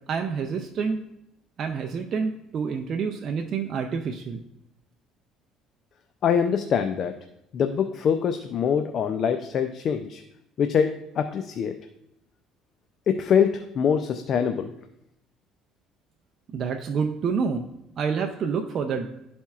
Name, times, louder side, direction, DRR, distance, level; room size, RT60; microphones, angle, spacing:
voice 1, 0.1-1.0 1.6-4.4 16.5-17.7 18.0-19.1, right 5 dB, 50° right, 4 dB, 0.5 m, -28 dB
voice 2, 6.2-7.2 7.5-10.2 10.6-11.7 13.1-14.7, left 7 dB, 50° left, 7 dB, 0.4 m, -24 dB
11.5 x 4.3 x 2.4 m, 0.82 s
cardioid pair, 100°, 0 cm